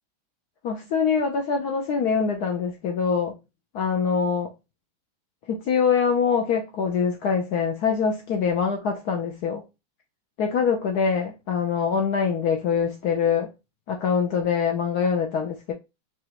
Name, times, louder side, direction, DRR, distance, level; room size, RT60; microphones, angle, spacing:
voice 1, 0.6-3.3 3.7-4.5 5.5-9.6 10.4-13.5 13.9-15.7, left 6 dB, 75° left, 0.9 m, -24 dB
4.8 x 2.4 x 2.8 m
omnidirectional pair, 2.2 m